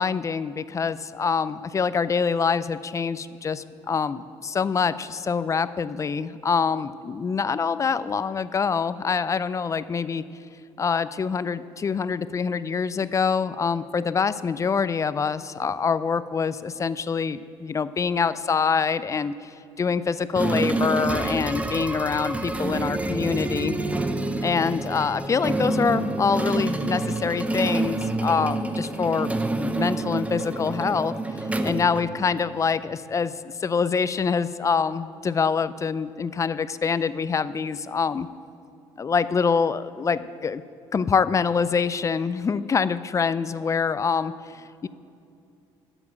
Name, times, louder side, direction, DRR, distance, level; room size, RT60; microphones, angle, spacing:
voice 1, 0.0-10.2 10.8-23.7 24.4-29.3 29.6-38.3 39.0-40.6 40.9-44.9, left 5 dB, 30° left, 15 dB, 0.4 m, -25 dB
sound 1, 20.4-32.6, right 2 dB, 10° right, 0.6 m, -27 dB
8.3 x 7.0 x 7.2 m, 2.5 s
supercardioid pair, 75°, 11 cm